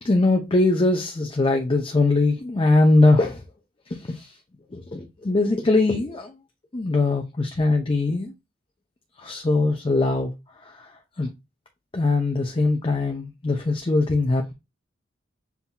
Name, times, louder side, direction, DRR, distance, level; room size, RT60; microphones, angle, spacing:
voice 1, 0.0-3.4 3.9-4.4 4.7-6.3 6.7-8.3 9.2-10.3 10.6-10.9 11.2-11.3 11.9-14.5, left 2 dB, 25° left, 0.6 m, -21 dB
7.1 x 2.7 x 2.2 m
head